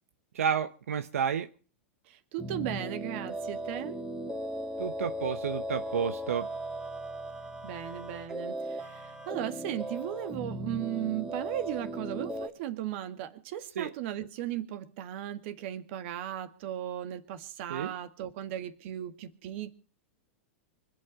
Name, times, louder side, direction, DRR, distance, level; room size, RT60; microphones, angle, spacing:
voice 1, 0.3-1.5 4.8-6.5 13.8-13.9 17.7-18.0, right 7 dB, 90° right, 9 dB, 0.9 m, -31 dB
voice 2, 2.1-4.0 7.6-19.8, right 12 dB, 55° right, 9 dB, 1.9 m, -36 dB
sound 1, 2.4-12.5, right 1 dB, 5° right, 2.1 m, -37 dB
24.5 x 8.5 x 5.7 m, 0.39 s
hypercardioid pair, 125°, 8 cm